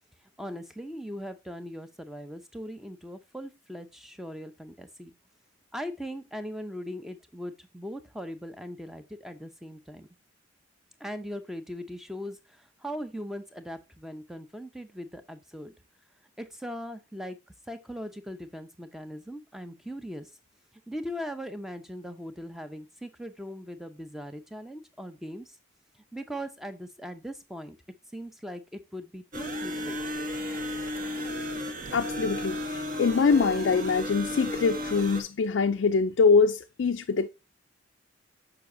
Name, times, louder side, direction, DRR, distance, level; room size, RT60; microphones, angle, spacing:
voice 1, 0.4-5.1 5.7-10.1 11.0-15.7 16.4-17.4 17.7-20.3 20.9-25.6 26.1-27.8 28.1-30.0, equal, ahead, 0.6 m, -39 dB
sound 1, 29.3-35.2, left 1 dB, 40° right, 1.2 m, -33 dB
voice 2, 31.9-37.3, left 4 dB, 60° left, 0.4 m, -24 dB
6.8 x 5.9 x 2.6 m
head